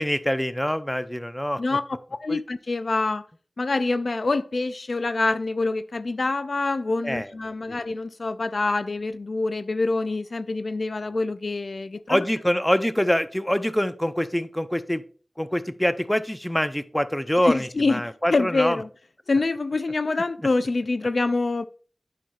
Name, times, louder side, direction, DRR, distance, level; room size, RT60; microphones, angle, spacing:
voice 1, 0.0-1.6 2.3-2.4 7.0-7.3 7.7-7.8 12.1-15.0 15.4-18.8, equal, 10° left, 0.6 m, -25 dB
voice 2, 2.2-3.3 3.6-12.2 17.4-18.9 19.3-21.6, left 3 dB, 65° left, 0.3 m, -26 dB
9.0 x 5.8 x 2.4 m
cardioid pair, 45°, 0 cm